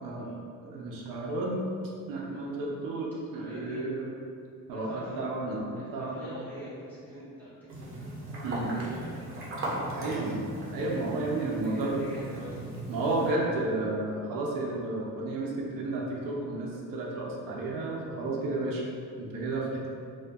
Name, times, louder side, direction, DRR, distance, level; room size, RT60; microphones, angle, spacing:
voice 1, 0.6-1.6 2.1-4.1 4.7-6.2 8.4-8.7 9.9-10.4 10.7-12.0 12.9-18.8 19.2-19.9, right 2 dB, 85° right, -3 dB, 0.5 m, -32 dB
voice 2, 3.3-3.9 4.7-5.2 5.7-7.8 8.6-9.2 11.4-13.5, right 1 dB, 5° left, -13 dB, 0.9 m, -46 dB
sound 1, 7.7-13.3, right 1 dB, 40° right, 0.6 m, -38 dB
2.6 x 2.2 x 2.2 m, 2.4 s
cardioid pair, 130°, 33 cm